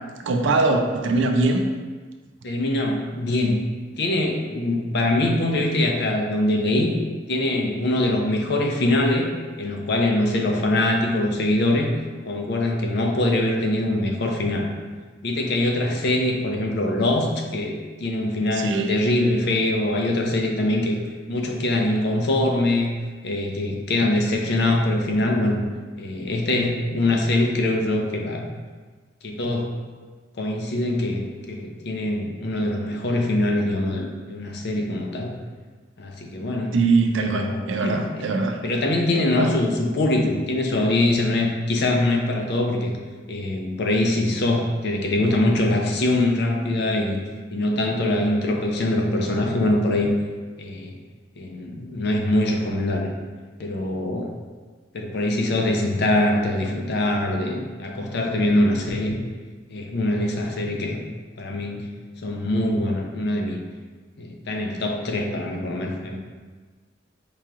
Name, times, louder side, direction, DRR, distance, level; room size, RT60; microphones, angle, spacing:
voice 1, 0.2-1.6 18.5-19.0 36.7-38.6 39.4-39.5, right 3 dB, 75° right, 4 dB, 0.4 m, -22 dB
voice 2, 2.4-3.6 4.0-6.9 7.3-9.3 9.6-11.9 12.3-14.7 15.2-21.0 21.3-22.9 23.2-25.6 26.0-28.5 29.2-29.8 30.4-35.3 36.0-36.8 37.2-38.3 38.6-42.9 43.3-47.2 47.5-50.1 50.6-50.9 51.4-53.1 53.6-54.3 54.9-59.2 59.7-61.0 61.4-61.9 62.2-63.6 64.2-66.2, left 1 dB, 60° left, 2 dB, 0.5 m, -23 dB
4.7 x 2.9 x 2.4 m, 1.4 s
head